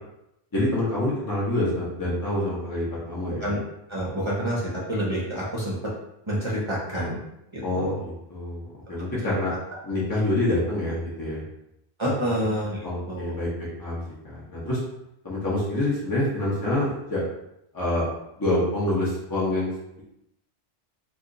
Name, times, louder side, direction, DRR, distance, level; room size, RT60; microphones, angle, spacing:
voice 1, 0.5-3.5 7.6-9.5 9.8-11.4 12.8-14.8 15.2-17.2 17.7-18.0 18.4-19.7, left 1 dB, 20° left, -7 dB, 0.8 m, -26 dB
voice 2, 3.9-4.6 4.9-5.9 6.3-7.2 7.5-8.0 9.2-9.3 12.0-13.3, equal, 30° right, -6 dB, 0.7 m, -28 dB
2.8 x 2.4 x 3.8 m, 0.84 s
omnidirectional pair, 1.1 m